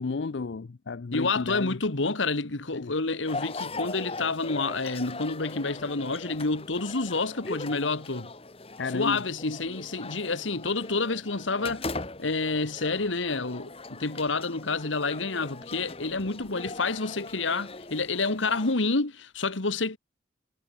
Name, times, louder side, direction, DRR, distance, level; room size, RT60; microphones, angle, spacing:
voice 1, 0.0-1.8 2.7-2.9 8.8-9.2, left 4 dB, 70° left, 0.5 m, -32 dB
voice 2, 1.1-8.3 8.9-11.9 12.2-20.0, left 3 dB, 85° left, 1.8 m, -29 dB
sound 1, 3.3-18.7, left 3 dB, 30° left, 1.5 m, -40 dB
head